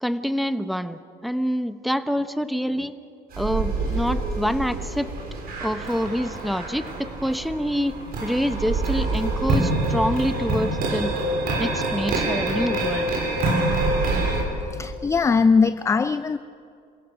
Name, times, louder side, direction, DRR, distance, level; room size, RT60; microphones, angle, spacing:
voice 1, 0.0-2.9 3.4-5.1 5.6-7.9 8.2-11.1 11.6-13.1, equal, ahead, 10 dB, 0.9 m, -26 dB
sound 1, 3.3-14.4, right 2 dB, 65° right, 4.6 m, -26 dB
voice 2, 14.7-16.4, left 5 dB, 15° left, 13 dB, 0.4 m, -20 dB
27.0 x 16.5 x 6.5 m, 2.5 s
cardioid pair, 110°, 17 cm